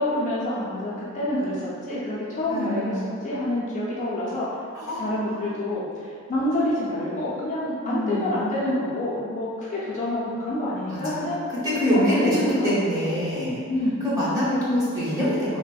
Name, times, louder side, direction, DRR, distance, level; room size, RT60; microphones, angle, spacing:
voice 1, 0.0-4.5 5.0-11.5 12.0-13.3 13.7-14.0, left 1 dB, 35° left, -7 dB, 0.4 m, -27 dB
voice 2, 2.5-3.1 4.9-5.4 7.8-8.4 10.9-11.3 11.6-13.6 14.0-15.6, equal, 15° right, -10 dB, 0.8 m, -25 dB
3.3 x 2.1 x 2.3 m, 2.3 s
head